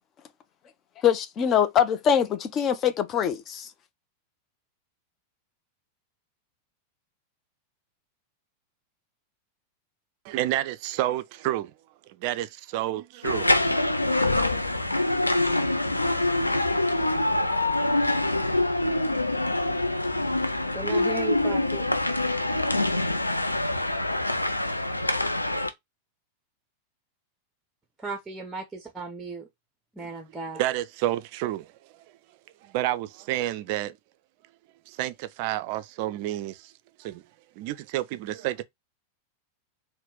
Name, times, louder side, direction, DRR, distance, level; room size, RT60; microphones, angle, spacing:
voice 1, 1.0-3.7, left 8 dB, 30° left, 0.5 m, -23 dB
voice 2, 10.2-11.7 12.2-13.7 14.1-14.6 30.0-30.1 30.6-31.7 32.6-34.0 34.9-36.7 37.0-37.2 37.6-38.6, right 14 dB, 45° right, 0.4 m, -30 dB
sound 1, 13.2-25.7, left 2 dB, 85° left, 0.4 m, -25 dB
voice 3, 20.7-21.9 28.0-29.5 29.9-30.6, right 3 dB, 10° right, 0.7 m, -36 dB
4.0 x 2.1 x 3.7 m
figure-of-eight pair, 90°, 0 cm